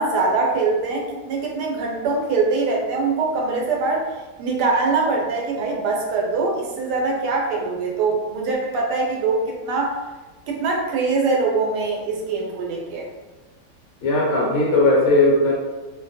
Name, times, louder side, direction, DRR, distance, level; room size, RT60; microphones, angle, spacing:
voice 1, 0.0-4.1 4.4-10.0 10.5-13.1, right 3 dB, 85° right, -1 dB, 1.2 m, -23 dB
voice 2, 14.0-15.5, left 2 dB, 65° left, -3 dB, 1.1 m, -17 dB
2.7 x 2.2 x 2.6 m, 1.2 s
omnidirectional pair, 1.7 m